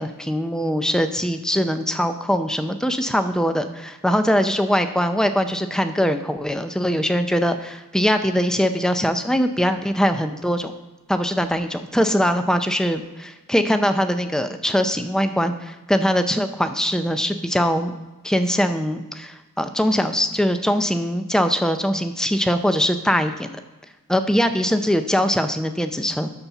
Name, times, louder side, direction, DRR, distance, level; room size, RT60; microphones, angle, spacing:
voice 1, 0.0-10.7 11.1-17.9 18.2-23.6 24.1-26.3, equal, 5° left, 8 dB, 0.5 m, -22 dB
12.5 x 4.2 x 5.9 m, 1.1 s
head